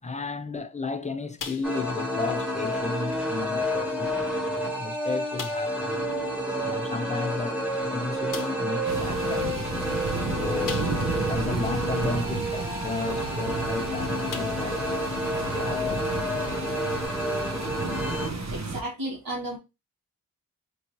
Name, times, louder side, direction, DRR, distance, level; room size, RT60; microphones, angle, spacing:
voice 1, 0.0-6.1 6.6-10.0 10.3-10.8 11.3-15.1 15.4-16.2, left 3 dB, 20° left, 0.5 m, -34 dB
sound 1, 1.4-2.1 2.4-2.6 3.1-3.2 4.1-4.2 4.6-4.7 5.4-5.8 7.4-7.5 8.3-8.7 10.6-11.2 11.7-11.8 13.7-13.8 14.3-14.8 15.2-15.3 17.0-17.1, left 5 dB, 70° left, 0.7 m, -39 dB
sound 2, 1.6-18.3, equal, 5° right, 1.2 m, -29 dB
sound 3, 8.9-18.8, right 3 dB, 55° right, 0.7 m, -32 dB
voice 2, 18.5-19.6, right 1 dB, 90° right, 1.6 m, -33 dB
4.6 x 2.6 x 2.9 m
wide cardioid pair, 70°, 34 cm